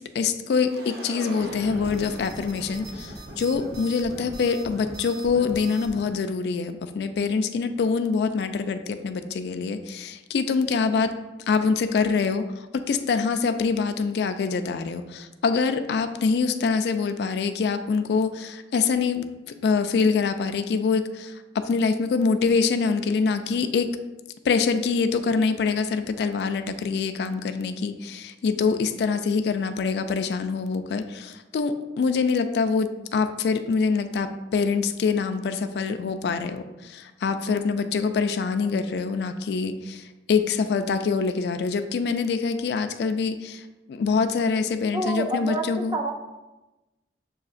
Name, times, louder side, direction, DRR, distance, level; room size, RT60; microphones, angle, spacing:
voice 1, 0.0-11.2 11.5-19.3 19.6-24.0 24.4-46.0, left 5 dB, 65° left, 8 dB, 0.3 m, -25 dB
sound 1, 0.6-6.1, right 1 dB, 60° right, 0.7 m, -39 dB
voice 2, 44.9-46.1, right 2 dB, 25° right, 4 dB, 0.4 m, -28 dB
7.0 x 2.7 x 2.4 m, 1.1 s
head